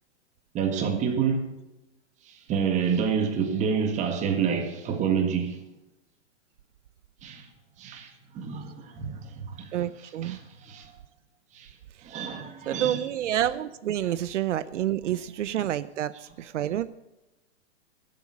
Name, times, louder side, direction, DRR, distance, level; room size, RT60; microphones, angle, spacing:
voice 1, 0.5-1.5 2.3-5.6 7.2-7.5 7.8-10.9 11.5-11.7 12.0-13.2 15.1-15.2, right 6 dB, 20° right, 1.8 m, -29 dB
voice 2, 9.7-10.4 12.7-17.0, right 11 dB, 80° right, 0.7 m, -28 dB
12.5 x 8.3 x 8.4 m
hypercardioid pair, 155°, 36 cm